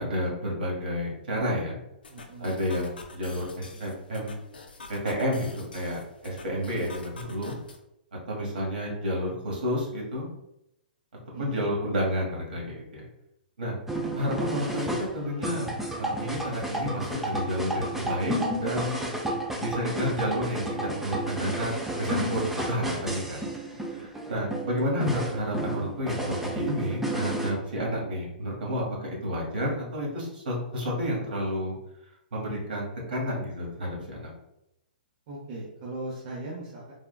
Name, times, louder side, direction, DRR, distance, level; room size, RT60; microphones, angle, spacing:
voice 1, 0.0-1.8 2.4-4.3 4.9-7.6 8.3-10.3 11.4-13.0 13.6-13.7 14.2-15.7 16.0-19.0 19.6-23.5 23.9-31.7 32.3-34.3, equal, 75° right, -2 dB, 1.2 m, -30 dB
sound 1, 2.0-7.8, left 3 dB, 90° left, 0.4 m, -47 dB
voice 2, 2.1-2.5 3.7-3.8 11.3-11.7 23.9-24.1 24.9-25.2 35.3-36.9, right 2 dB, 50° right, -4 dB, 0.7 m, -39 dB
sound 2, 13.9-27.5, right 1 dB, 5° right, 0.4 m, -32 dB
3.5 x 2.3 x 2.2 m, 0.84 s
hypercardioid pair, 125°, 5 cm